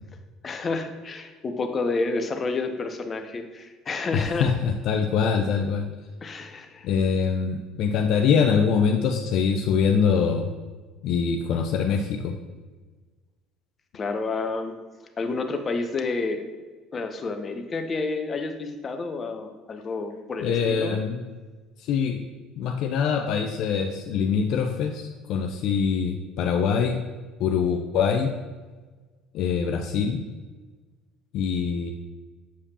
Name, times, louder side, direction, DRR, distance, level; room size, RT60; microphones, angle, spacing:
voice 1, 0.4-4.5 6.2-6.9 13.9-14.7 15.2-16.4 16.9-21.0, left 3 dB, 35° left, 6 dB, 0.8 m, -29 dB
voice 2, 4.1-5.8 6.8-10.5 11.0-12.3 20.4-21.2 21.8-22.2 22.6-27.0 27.4-28.3 29.3-30.2 31.3-31.9, left 6 dB, 65° left, 3 dB, 0.4 m, -24 dB
6.9 x 4.9 x 2.8 m, 1.4 s
hypercardioid pair, 70°, 0 cm